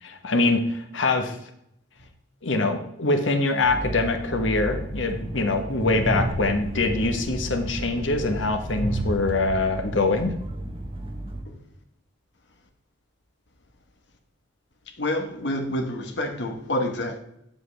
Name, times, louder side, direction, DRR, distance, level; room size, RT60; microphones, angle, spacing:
voice 1, 0.0-1.4 2.4-10.3, left 2 dB, 85° left, 1.2 m, -24 dB
Train, 3.6-11.4, right 1 dB, 30° right, 1.2 m, -32 dB
voice 2, 15.0-17.2, left 1 dB, 65° left, 1.3 m, -28 dB
9.4 x 7.6 x 3.4 m
head